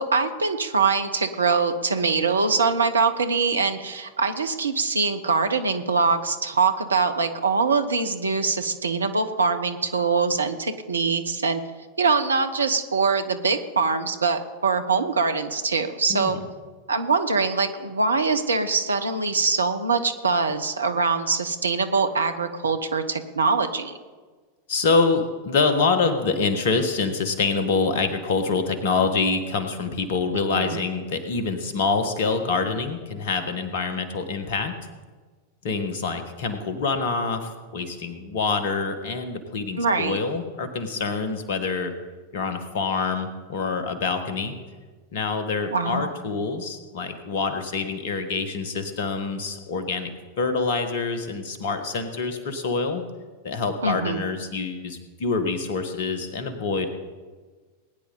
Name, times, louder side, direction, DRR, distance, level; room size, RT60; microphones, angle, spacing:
voice 1, 0.0-11.6 12.0-16.4 16.9-24.0 30.5-30.8 39.8-40.2 45.7-46.1 53.8-54.2, right 4 dB, 75° right, 8 dB, 1.1 m, -23 dB
voice 2, 16.1-16.4 24.7-34.7 35.6-41.9 42.3-44.5 45.1-50.1 50.4-53.0 53.4-56.9, left 4 dB, 55° left, 8 dB, 1.7 m, -26 dB
20.5 x 9.8 x 4.1 m, 1.4 s
figure-of-eight pair, 90°, 0 cm